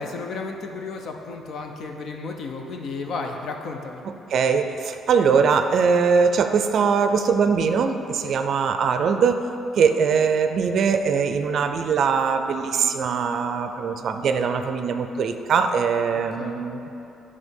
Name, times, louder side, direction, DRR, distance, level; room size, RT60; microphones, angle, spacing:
voice 1, 0.0-4.0 8.2-8.3 16.1-16.7, left 3 dB, 60° left, 3 dB, 0.7 m, -33 dB
voice 2, 4.3-9.5 9.8-16.9, right 6 dB, 55° right, 7 dB, 0.4 m, -21 dB
9.6 x 3.3 x 5.3 m, 2.8 s
cardioid pair, 125°, 0 cm